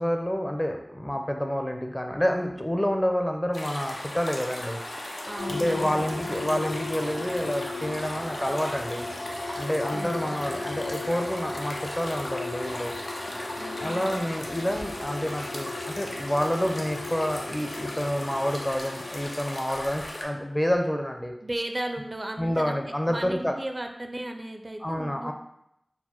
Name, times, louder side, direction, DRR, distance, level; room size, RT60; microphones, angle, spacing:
voice 1, 0.0-4.8 5.5-9.1 9.6-12.9 13.8-21.3 22.4-23.5 24.8-25.3, equal, 20° left, 4 dB, 0.5 m, -28 dB
sound 1, 3.5-20.2, left 1 dB, 85° left, 0.6 m, -37 dB
voice 2, 5.3-6.6 9.9-10.7 13.6-14.2 21.4-25.3, right 1 dB, 40° right, 4 dB, 0.4 m, -36 dB
sound 2, 5.4-19.2, left 3 dB, 50° left, 1.2 m, -37 dB
4.4 x 2.1 x 4.3 m, 0.79 s
wide cardioid pair, 45°, 0 cm